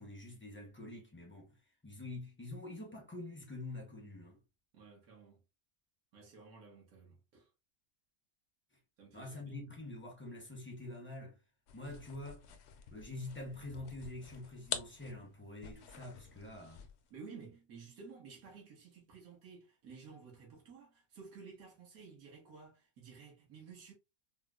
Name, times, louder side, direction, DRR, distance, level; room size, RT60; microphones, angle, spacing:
voice 1, 0.0-1.6 1.8-4.4 9.1-11.4 11.7-12.5 12.9-16.8, left 2 dB, 15° left, 0.5 m, -46 dB
voice 2, 4.7-5.4 6.1-7.5 9.0-9.6 17.1-23.9, right 5 dB, 75° right, 1.6 m, -54 dB
sound 1, 11.7-17.1, left 7 dB, 65° left, 0.7 m, -47 dB
4.2 x 2.0 x 2.3 m
omnidirectional pair, 1.5 m